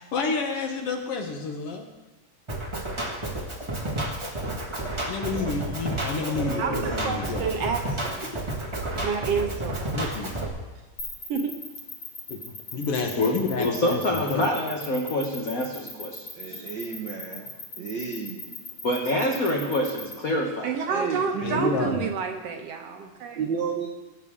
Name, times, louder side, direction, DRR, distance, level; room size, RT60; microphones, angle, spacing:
voice 1, 0.0-1.9 5.1-7.4 9.9-10.4 12.3-14.4 21.4-22.1, left 4 dB, 60° left, 3 dB, 1.7 m, -30 dB
Drum kit, 2.5-10.5, right 1 dB, 20° right, 0.7 m, -31 dB
voice 2, 5.4-7.2 15.9-16.0 16.3-18.7 20.8-22.1 23.3-23.9, right 5 dB, 85° right, 2 dB, 1.0 m, -33 dB
voice 3, 6.6-8.3 9.0-9.9 11.3-11.6 20.6-23.4, right 5 dB, 65° right, 4 dB, 1.8 m, -29 dB
sound 1, 11.0-20.1, left 3 dB, 45° left, 2.5 m, -38 dB
voice 4, 13.2-16.6 18.8-21.0, left 1 dB, 85° left, 0 dB, 0.7 m, -27 dB
19.0 x 8.2 x 3.7 m, 1.2 s
omnidirectional pair, 3.3 m